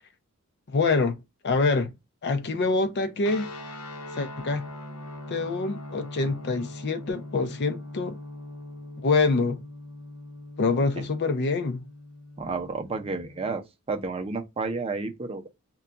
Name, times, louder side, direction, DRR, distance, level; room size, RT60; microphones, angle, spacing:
voice 1, 0.7-1.2 1.4-1.9 2.2-3.5 4.1-4.6 5.3-8.2 9.0-9.6 10.6-11.8, left 3 dB, 50° left, 0.5 m, -25 dB
sound 1, 3.2-13.6, left 1 dB, 80° left, 0.7 m, -41 dB
voice 2, 12.4-15.5, right 3 dB, 25° right, 0.5 m, -31 dB
2.3 x 2.2 x 3.8 m
head